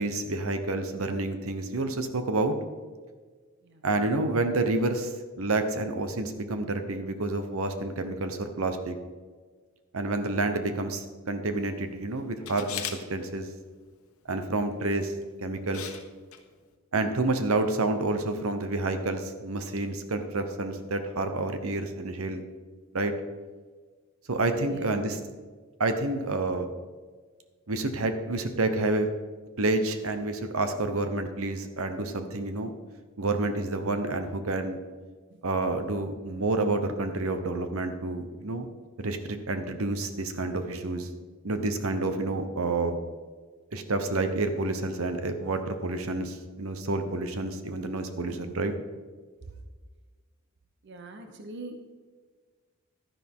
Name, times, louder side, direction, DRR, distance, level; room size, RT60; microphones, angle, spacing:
voice 1, 0.0-2.5 3.8-9.0 9.9-12.8 13.1-13.5 14.3-15.1 15.4-15.9 16.9-22.4 22.9-23.1 24.3-25.2 25.8-26.7 27.7-29.1 29.6-32.7 33.2-34.8 35.4-38.7 39.0-41.1 41.4-43.0 43.7-48.7, right 2 dB, 75° right, 8 dB, 1.0 m, -29 dB
Camera, 12.5-13.0 15.0-15.2 15.7-16.0 16.3-16.4, left 9 dB, 85° left, 1.2 m, -36 dB
voice 2, 24.6-25.0 35.3-35.4 48.3-48.4 50.8-51.9, right 2 dB, 55° right, 6 dB, 0.9 m, -43 dB
12.0 x 10.5 x 3.7 m, 1.5 s
head